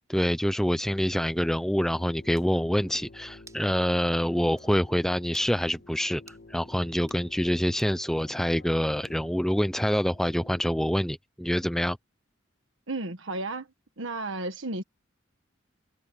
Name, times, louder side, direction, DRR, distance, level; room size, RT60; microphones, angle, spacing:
voice 1, 0.1-6.2 6.5-12.0, equal, ahead, 0.5 m, -26 dB
sound 1, 0.9-10.9, left 2 dB, 55° left, 1.8 m, -51 dB
sound 2, 2.3-2.5 3.5-3.7 4.1-4.2 4.6-4.7 5.3-5.5 6.3-6.5 7.0-7.2 7.8-8.0 9.0-9.4, right 4 dB, 15° right, 3.7 m, -54 dB
voice 2, 12.9-13.7 14.0-14.8, right 2 dB, 70° right, 1.4 m, -33 dB
head